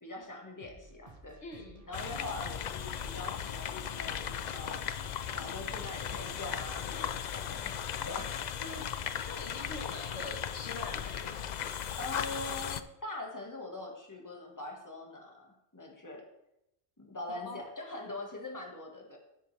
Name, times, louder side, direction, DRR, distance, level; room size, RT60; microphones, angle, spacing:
voice 1, 0.0-1.4 1.9-4.8 5.3-8.9 12.0-16.3 17.0-19.2, left 2 dB, 15° left, 0 dB, 1.7 m, -43 dB
sound 1, 0.6-9.0, right 2 dB, 35° right, 1.1 m, -55 dB
voice 2, 1.4-1.9 9.2-11.8 17.3-17.6, left 2 dB, 85° left, 3 dB, 1.7 m, -44 dB
sound 2, 1.9-12.8, left 8 dB, 55° left, 0.5 m, -37 dB
10.5 x 9.8 x 3.4 m, 0.85 s
omnidirectional pair, 1.1 m